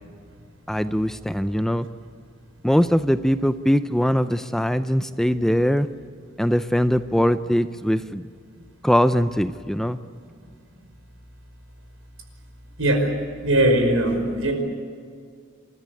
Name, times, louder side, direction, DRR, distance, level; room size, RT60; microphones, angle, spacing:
voice 1, 0.7-1.9 2.6-5.9 6.4-8.2 8.8-10.0, equal, ahead, 11 dB, 0.5 m, -21 dB
voice 2, 13.4-14.5, right 1 dB, 85° right, 4 dB, 5.3 m, -20 dB
28.0 x 14.0 x 9.7 m, 2.2 s
head